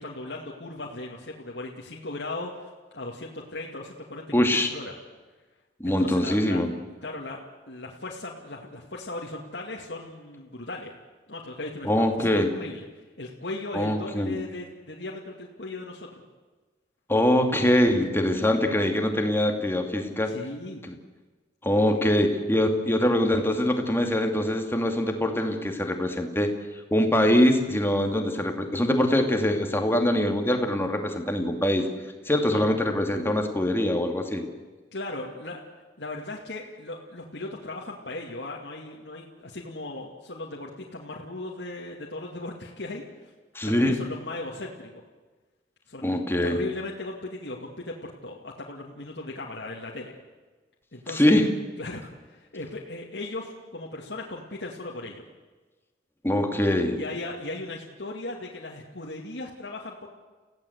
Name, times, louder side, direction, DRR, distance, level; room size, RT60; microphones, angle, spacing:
voice 1, 0.0-4.9 5.8-6.6 7.0-10.9 11.3-12.8 13.2-16.1 20.3-20.8 21.9-22.2 32.5-32.6 34.9-35.6 36.0-43.3 43.6-45.0 45.9-46.1 46.4-50.2 50.9-51.4 51.8-55.2 56.9-60.1, left 2 dB, 75° left, -2 dB, 2.4 m, -37 dB
voice 2, 4.3-4.7 5.8-6.7 11.8-12.5 13.7-14.4 17.1-20.3 20.8-21.0 21.6-26.5 26.9-31.9 32.3-34.4 43.5-44.0 46.0-46.6 51.1-51.5 56.2-57.0, left 1 dB, 15° left, 4 dB, 2.5 m, -23 dB
30.0 x 16.5 x 8.1 m, 1.3 s
head